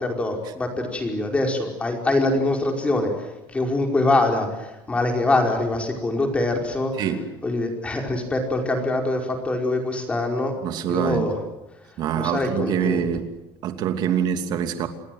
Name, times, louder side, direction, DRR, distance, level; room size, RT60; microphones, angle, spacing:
voice 1, 0.0-3.3 3.5-4.5 4.9-6.9 7.4-10.6 10.9-11.4 12.2-13.0, left 2 dB, 15° left, 5.0 m, -24 dB
voice 2, 10.6-11.3 12.0-13.2 13.6-14.9, right 9 dB, 50° right, 2.8 m, -24 dB
28.0 x 21.5 x 8.0 m
cardioid pair, 165°, 9 cm